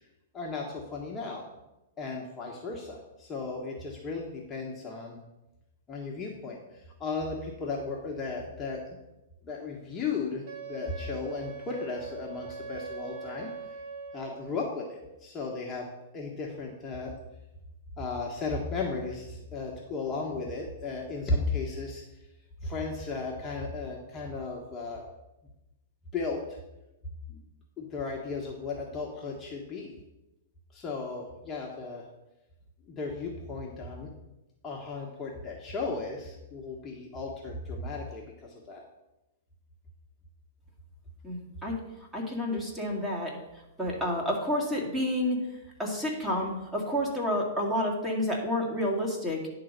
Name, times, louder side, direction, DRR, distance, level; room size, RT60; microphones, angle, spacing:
voice 1, 0.3-1.4 2.0-5.2 5.9-9.0 9.4-13.7 14.1-15.9 16.1-17.1 18.0-22.0 22.6-25.0 26.1-26.6 27.3-27.4 27.8-29.9 30.7-32.0 32.9-34.1 34.6-38.8, left 3 dB, 20° left, -2 dB, 1.3 m, -35 dB
Wind instrument woodwind instrument, 10.4-14.6, right 5 dB, 40° right, 1.7 m, -42 dB
voice 2, 41.2-41.8 42.1-43.4 43.8-45.4 45.8-49.4, left 1 dB, 10° right, -2 dB, 2.0 m, -29 dB
10.0 x 3.9 x 6.6 m, 0.97 s
hypercardioid pair, 135°, 0 cm